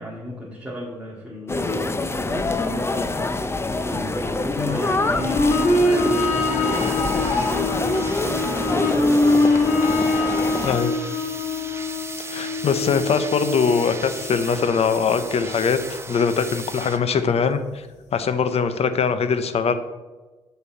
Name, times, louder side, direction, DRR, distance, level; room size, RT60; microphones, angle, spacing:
voice 1, 0.0-3.1 3.8-9.5, equal, 5° right, -7 dB, 2.2 m, -34 dB
sound 1, 1.5-10.8, left 2 dB, 20° left, 0.7 m, -26 dB
sound 2, 5.0-16.3 17.5-17.6, left 2 dB, 75° left, 1.5 m, -24 dB
sound 3, 6.7-17.0, right 3 dB, 20° right, 1.0 m, -37 dB
voice 2, 10.6-11.0 12.2-17.9 18.1-19.7, left 6 dB, 55° left, 10 dB, 0.8 m, -22 dB
6.8 x 4.5 x 6.7 m, 1.2 s
supercardioid pair, 65°, 12 cm